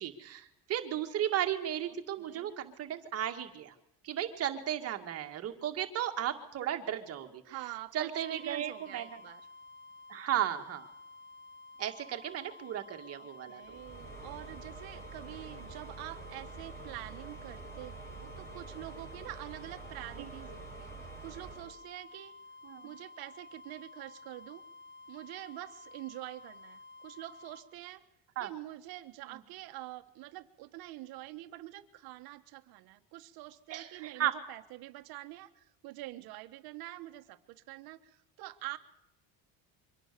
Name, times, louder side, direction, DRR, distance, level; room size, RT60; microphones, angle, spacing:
voice 1, 0.0-3.7 4.0-7.4 7.9-9.1 10.1-10.9 11.8-13.8 20.2-20.3 22.6-22.9 28.4-28.5 29.3-29.4 33.7-34.4, right 11 dB, 40° right, 6 dB, 2.0 m, -35 dB
voice 2, 2.1-2.5 7.4-9.5 13.2-22.3 22.8-24.6 25.1-28.0 28.4-38.8, right 17 dB, 70° right, 7 dB, 1.5 m, -46 dB
sound 1, 8.1-27.7, left 3 dB, 25° left, 1.6 m, -53 dB
sound 2, 13.7-21.7, right 4 dB, 5° left, 5.6 m, -47 dB
24.5 x 18.0 x 6.9 m, 0.86 s
cardioid pair, 175°, 38 cm